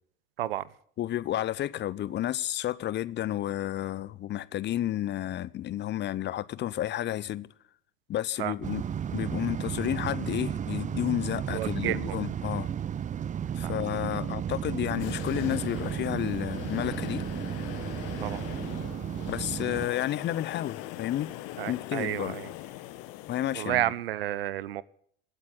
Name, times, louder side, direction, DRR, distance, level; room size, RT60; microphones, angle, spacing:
voice 1, 1.0-7.5 8.1-8.8 9.1-12.7 13.6-17.2 19.3-21.3 21.7-22.4 23.3-23.9, left 13 dB, 35° left, 0.7 m, -31 dB
sound 1, 8.6-19.9, right 8 dB, 25° right, 0.6 m, -33 dB
voice 2, 11.5-12.2 13.6-13.7 18.2-18.4 21.6-22.5 23.5-24.8, right 13 dB, 75° right, 0.7 m, -31 dB
sound 2, 15.0-23.7, left 16 dB, 60° left, 1.4 m, -41 dB
17.0 x 8.4 x 9.8 m
figure-of-eight pair, 65°, 30 cm